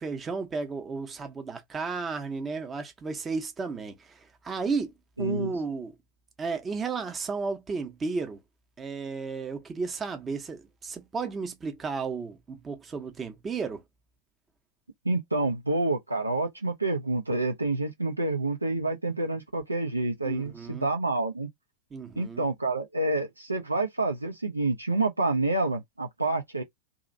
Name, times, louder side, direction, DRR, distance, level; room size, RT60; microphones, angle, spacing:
voice 1, 0.0-4.9 5.2-5.9 6.4-8.4 8.8-13.8 20.2-20.9 21.9-22.4, right 4 dB, 20° right, 0.9 m, -33 dB
voice 2, 5.2-5.5 15.0-21.5 22.2-26.6, right 2 dB, 85° right, 0.7 m, -28 dB
2.9 x 2.6 x 2.6 m
figure-of-eight pair, 90°, 0 cm